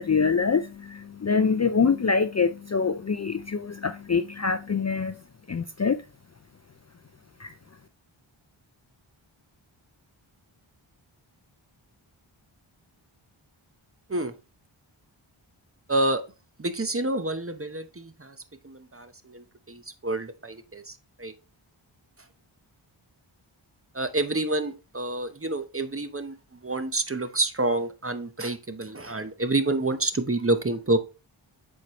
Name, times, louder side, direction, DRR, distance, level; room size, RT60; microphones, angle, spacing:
voice 1, 0.0-5.2 5.5-6.0 7.4-7.5, left 5 dB, 35° left, 0.4 m, -25 dB
voice 2, 15.9-16.2 16.6-18.4 18.6-21.3 23.9-31.0, right 2 dB, 25° right, 0.8 m, -28 dB
7.9 x 4.6 x 3.0 m
wide cardioid pair, 55°, 50 cm